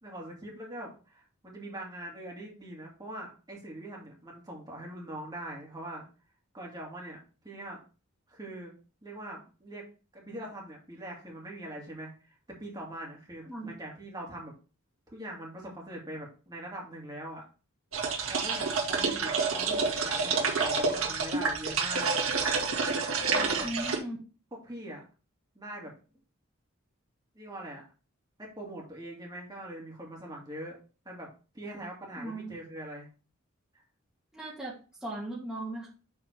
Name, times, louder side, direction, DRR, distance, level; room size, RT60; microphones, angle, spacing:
voice 1, 0.0-6.1 6.5-7.2 7.4-7.8 8.3-8.7 9.0-9.9 10.1-12.1 12.6-14.5 15.1-17.4 18.3-22.1 23.2-23.7 24.6-25.0 25.6-25.9 27.3-27.8 28.4-30.8 31.0-31.3 31.5-33.1, right 1 dB, 20° right, -2 dB, 2.5 m, -42 dB
sound 1, 17.9-24.0, right 4 dB, 80° right, 1.9 m, -28 dB
voice 2, 23.6-24.2 32.2-32.5 34.3-34.7 35.0-35.9, right 1 dB, 5° right, -8 dB, 2.1 m, -37 dB
7.1 x 4.2 x 4.6 m, 0.34 s
head